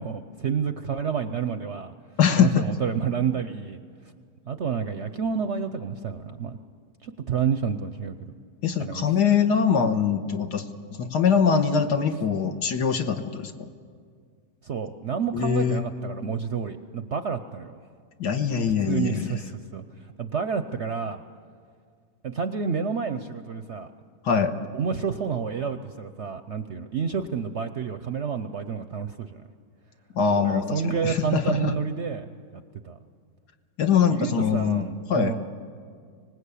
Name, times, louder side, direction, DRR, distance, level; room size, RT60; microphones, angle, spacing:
voice 1, 0.0-1.9 2.4-3.8 4.5-6.6 7.0-8.3 8.8-9.1 14.6-17.8 18.6-19.8 20.2-21.2 22.2-23.9 24.5-29.4 30.3-32.3 32.5-33.0 34.0-35.5, right 6 dB, 55° right, 9 dB, 0.8 m, -29 dB
voice 2, 2.2-2.7 8.6-10.6 11.0-13.7 15.3-15.8 18.2-19.3 24.2-24.5 30.1-31.7 33.8-35.3, left 7 dB, 70° left, 6 dB, 1.8 m, -23 dB
24.5 x 19.5 x 8.4 m, 2.1 s
omnidirectional pair, 1.9 m